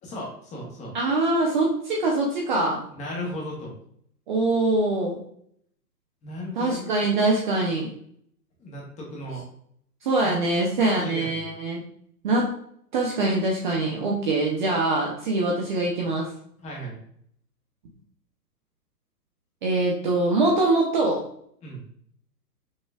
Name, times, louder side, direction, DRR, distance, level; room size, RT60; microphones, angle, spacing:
voice 1, 0.0-0.9 2.9-3.7 6.2-6.9 8.6-9.4 10.2-11.5 16.6-17.0 21.6-21.8, equal, 15° left, -3 dB, 1.0 m, -36 dB
voice 2, 0.9-2.8 4.3-5.2 6.6-7.9 10.0-11.8 12.2-12.6 12.9-16.3 19.6-21.2, right 2 dB, 30° right, -1 dB, 0.6 m, -23 dB
5.6 x 3.0 x 2.3 m, 0.65 s
hypercardioid pair, 130°, 50 cm